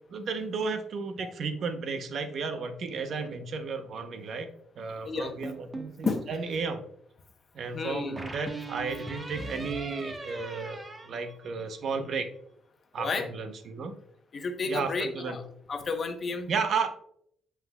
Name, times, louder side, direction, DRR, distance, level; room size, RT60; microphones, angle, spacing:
voice 1, 0.1-4.5 4.8-6.8 7.5-12.3 12.9-13.9 14.7-15.4 16.5-16.9, right 5 dB, 60° right, 8 dB, 0.8 m, -33 dB
sound 1, 5.4-6.3 8.2-11.9, right 2 dB, 25° right, 1.1 m, -40 dB
voice 2, 7.7-8.2 13.0-13.3 14.3-15.4 15.7-16.5, left 4 dB, 45° left, 6 dB, 0.9 m, -31 dB
7.7 x 5.8 x 2.3 m, 0.67 s
cardioid pair, 90°, 0 cm